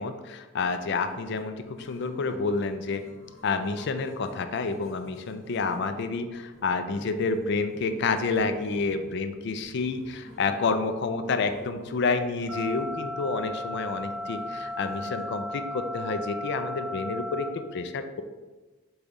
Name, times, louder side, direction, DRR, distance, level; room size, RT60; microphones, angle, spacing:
voice 1, 0.0-3.0 3.4-18.2, left 4 dB, 55° left, 8 dB, 0.3 m, -29 dB
sound 1, 0.8-16.5, left 1 dB, 85° left, 0.9 m, -52 dB
sound 2, 12.5-17.5, left 1 dB, 85° right, 0.7 m, -35 dB
5.0 x 2.3 x 4.0 m, 1.2 s
head